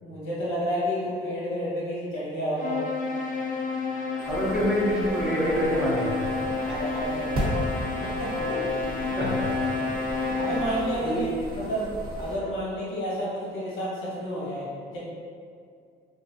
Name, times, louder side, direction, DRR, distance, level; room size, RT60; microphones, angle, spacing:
voice 1, 0.0-2.8 6.6-7.6 8.0-8.6 10.4-11.9 12.2-15.0, equal, 80° left, -7 dB, 1.2 m, -31 dB
sound 1, 2.6-11.1, left 3 dB, 40° left, 0.5 m, -30 dB
sound 2, 4.2-12.4, right 1 dB, 50° right, 1.1 m, -36 dB
voice 2, 4.3-6.3 6.7-6.8 8.6-8.7 9.2-9.5 11.0-11.2, equal, 5° right, -7 dB, 0.9 m, -26 dB
3.7 x 2.3 x 2.7 m, 2.3 s
cardioid pair, 90°, 20 cm